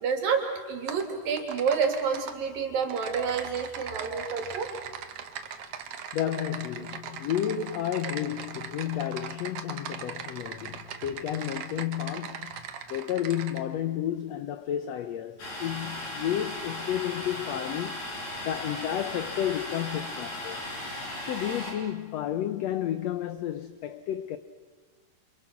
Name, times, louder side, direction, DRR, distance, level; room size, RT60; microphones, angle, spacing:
voice 1, 0.0-4.7, right 6 dB, 80° right, 4.2 m, -29 dB
Typing, 0.9-1.0 1.4-2.3 2.8-13.6, right 7 dB, 55° right, 1.9 m, -40 dB
voice 2, 6.1-12.6 12.9-20.7 21.2-24.4, left 11 dB, 75° left, 1.6 m, -32 dB
Domestic sounds home sounds, 15.4-21.7, left 1 dB, 55° left, 7.0 m, -36 dB
29.0 x 27.5 x 5.9 m
omnidirectional pair, 4.0 m